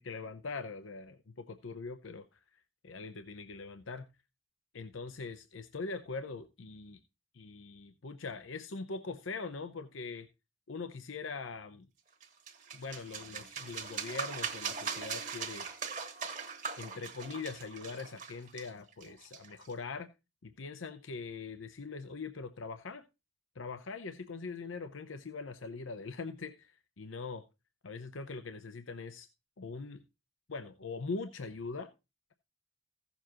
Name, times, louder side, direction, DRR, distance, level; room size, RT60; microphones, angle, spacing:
voice 1, 0.0-2.4 2.8-4.1 4.7-7.0 7.3-10.3 10.7-11.9 12.7-15.7 16.8-20.1 20.4-23.0 23.5-27.4 27.8-29.3 29.6-30.0 30.5-31.9, left 4 dB, 85° left, 0.7 m, -42 dB
sound 1, 12.2-19.7, right 6 dB, 40° right, 1.3 m, -40 dB
16.0 x 7.1 x 2.9 m
head